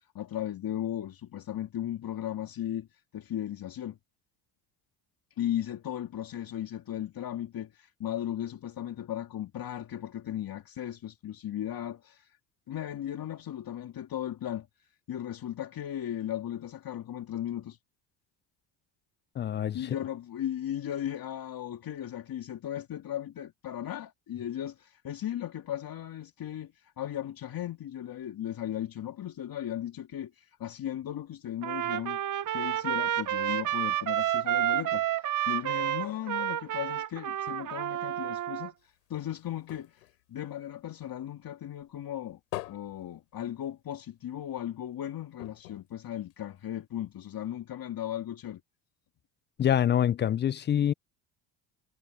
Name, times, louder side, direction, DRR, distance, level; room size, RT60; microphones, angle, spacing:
voice 1, 0.1-4.0 5.4-12.4 12.7-17.8 19.7-32.2 32.5-42.4 42.6-48.6, left 11 dB, 45° left, 2.3 m, -36 dB
voice 2, 19.4-20.0 49.6-50.9, left 10 dB, 25° left, 0.4 m, -26 dB
Trumpet, 31.6-38.7, right 12 dB, 40° right, 1.1 m, -30 dB
sound 1, 38.8-41.4 41.8-44.0 44.4-44.5 44.8-44.9 45.4-46.9 47.5-47.6, left 20 dB, 90° left, 5.1 m, -45 dB
supercardioid pair, 75°, 47 cm